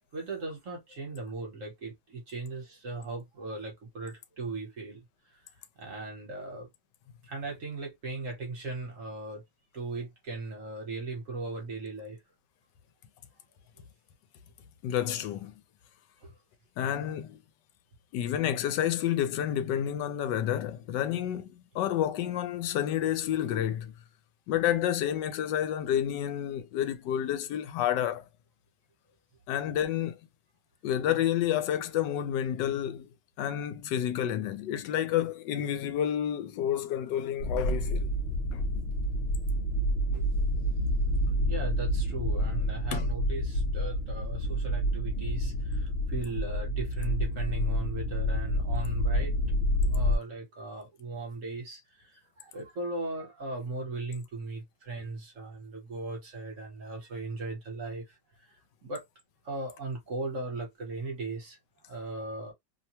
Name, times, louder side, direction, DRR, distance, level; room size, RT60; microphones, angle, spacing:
voice 1, 0.1-5.4 5.8-6.7 7.2-9.4 9.7-12.2 16.2-16.3 40.1-40.3 41.5-49.3 49.9-59.0 59.4-61.6 61.9-62.5, right 3 dB, 55° right, 1.2 m, -38 dB
voice 2, 14.8-15.5 16.8-17.4 18.1-23.9 24.5-28.2 29.5-30.2 30.8-33.1 33.4-38.2 38.5-38.7 42.9-43.1, left 10 dB, 85° left, 1.2 m, -29 dB
sound 1, 37.4-50.2, equal, 60° left, 0.6 m, -28 dB
3.0 x 2.2 x 2.8 m
omnidirectional pair, 1.9 m